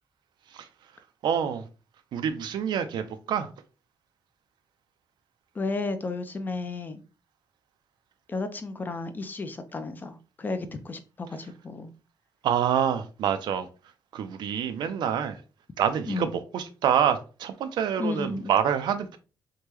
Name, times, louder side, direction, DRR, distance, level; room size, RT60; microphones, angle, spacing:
voice 1, 1.2-1.6 2.1-3.5 12.4-13.7 14.1-15.4 15.8-19.2, right 8 dB, 80° right, 0.4 m, -26 dB
voice 2, 5.5-7.0 8.3-11.9 16.1-16.4 18.0-18.5, left 3 dB, 25° left, 0.4 m, -33 dB
3.5 x 2.1 x 2.9 m
cardioid pair, 140°, 7 cm